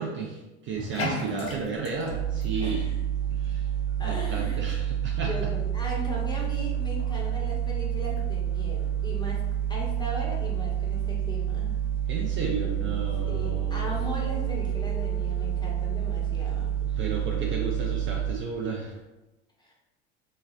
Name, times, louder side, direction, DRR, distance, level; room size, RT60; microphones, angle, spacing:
voice 1, 0.0-2.8 3.3-3.7 4.0-5.5 12.1-13.9 16.8-19.0, right 5 dB, 35° right, -1 dB, 0.5 m, -33 dB
Bathtub (filling or washing), 0.7-19.0, left 2 dB, 40° left, 0.9 m, -45 dB
voice 2, 1.1-1.8 2.6-3.0 4.0-4.6 5.2-9.4 9.7-11.8 13.3-17.0 19.6-19.7, equal, 15° left, -4 dB, 0.9 m, -38 dB
sound 1, 2.1-18.3, right 10 dB, 80° left, 0.8 m, -29 dB
sound 2, 12.3-18.1, left 3 dB, 60° left, 1.3 m, -48 dB
3.1 x 2.3 x 2.4 m, 1.0 s
hypercardioid pair, 75°, 34 cm